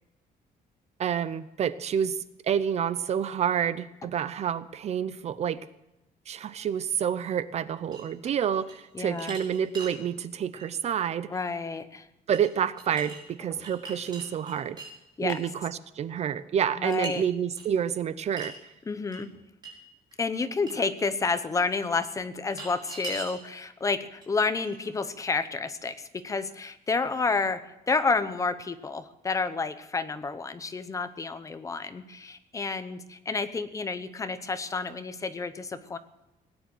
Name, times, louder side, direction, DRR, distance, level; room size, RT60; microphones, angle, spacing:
voice 1, 1.0-2.2 2.4-5.7 6.3-11.3 12.3-14.8 15.2-18.7, right 8 dB, 45° right, 15 dB, 0.6 m, -28 dB
sound 1, 7.9-8.8 9.1-10.0 10.5-10.7 12.3-12.5 12.8-13.2 13.6-14.9 15.3-15.5 16.9-17.1 17.6-17.7 18.4-18.6 19.1-19.2 19.6-19.7 20.1-20.2 20.7-20.8 22.4-23.4 24.2-24.3 24.6-25.2, right 3 dB, 25° right, 4.5 m, -41 dB
voice 2, 8.9-9.4 11.3-12.1 13.6-13.7 15.2-15.4 16.7-17.2 18.9-19.3 20.2-36.0, left 4 dB, 20° left, 11 dB, 0.8 m, -30 dB
18.5 x 9.7 x 7.8 m, 0.93 s
cardioid pair, 180°, 16 cm